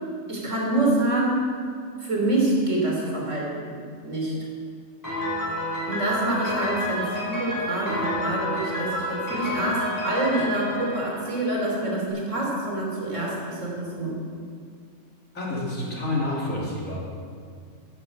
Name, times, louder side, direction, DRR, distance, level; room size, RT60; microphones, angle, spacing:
voice 1, 0.3-1.5 2.0-3.8 4.0-4.3 5.9-14.2, right 1 dB, 70° right, -3 dB, 3.5 m, -26 dB
Piano, 5.0-11.9, left 1 dB, 15° left, 4.4 m, -30 dB
voice 2, 15.3-17.0, left 2 dB, 85° left, -4 dB, 3.3 m, -28 dB
10.5 x 10.5 x 7.4 m, 2.2 s
omnidirectional pair, 1.4 m